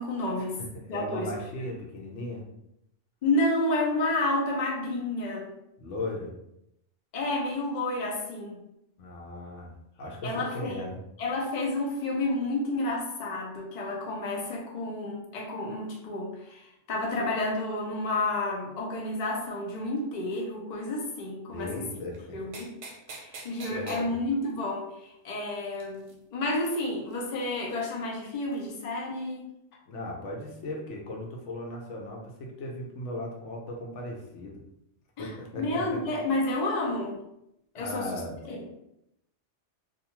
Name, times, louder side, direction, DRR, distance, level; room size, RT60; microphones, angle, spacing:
voice 1, 0.0-0.6 0.9-1.7 3.2-5.5 7.1-8.6 10.2-10.9 11.2-21.9 22.3-22.7 23.1-29.5 35.2-37.2 37.7-38.2 38.5-38.7, left 2 dB, 45° left, -2 dB, 0.6 m, -30 dB
voice 2, 0.7-2.4 5.8-6.3 9.0-9.7 10.0-11.0 21.5-22.1 23.7-24.1 29.9-34.6 35.2-36.0 37.7-38.3, left 1 dB, 80° left, 0 dB, 1.0 m, -37 dB
sound 1, 22.1-22.2 22.5-24.0 25.8-26.1 26.8-26.9 27.1-27.2 27.7-27.8 28.5-28.6, right 3 dB, 65° right, 0.8 m, -43 dB
2.5 x 2.3 x 2.9 m, 0.81 s
omnidirectional pair, 1.2 m